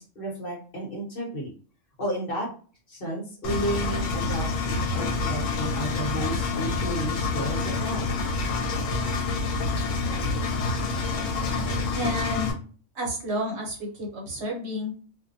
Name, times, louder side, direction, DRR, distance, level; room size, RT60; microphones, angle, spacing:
voice 1, 0.0-1.5 2.0-2.5 2.9-8.1, right 1 dB, 50° left, -3 dB, 1.0 m, -32 dB
Engine, 3.4-12.5, left 3 dB, 85° left, 1.0 m, -27 dB
voice 2, 12.0-12.5 12.9-15.0, equal, 60° right, -1 dB, 1.1 m, -31 dB
2.5 x 2.2 x 2.6 m, 0.40 s
omnidirectional pair, 1.3 m